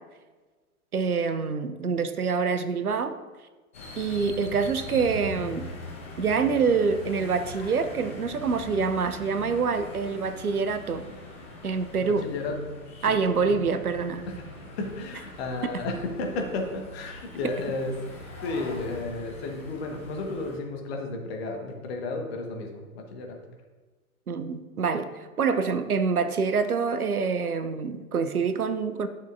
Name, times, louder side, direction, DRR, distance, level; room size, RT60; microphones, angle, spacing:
voice 1, 0.9-3.1 4.0-5.7 6.2-11.0 11.6-12.3 13.0-14.2 15.6-15.8 24.3-25.1 25.4-29.1, right 5 dB, 80° right, 10 dB, 0.7 m, -26 dB
sound 1, 3.7-20.6, left 2 dB, 10° left, 0.3 m, -42 dB
voice 2, 12.0-12.6 13.1-13.6 14.2-18.0 18.4-23.4, left 3 dB, 45° left, 2 dB, 1.4 m, -33 dB
10.5 x 6.3 x 2.6 m, 1.3 s
figure-of-eight pair, 105°, 44 cm